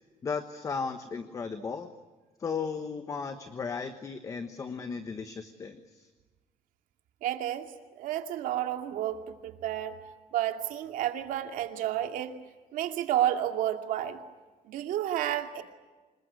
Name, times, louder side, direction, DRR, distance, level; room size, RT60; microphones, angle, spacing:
voice 1, 0.2-1.9 2.4-6.1, left 5 dB, 25° left, 8 dB, 1.2 m, -35 dB
voice 2, 7.2-7.7 8.0-10.0 10.3-12.3 12.7-14.2 14.7-15.6, right 12 dB, 75° right, 5 dB, 2.4 m, -31 dB
26.5 x 22.0 x 9.6 m, 1.3 s
cardioid pair, 180°, 14 cm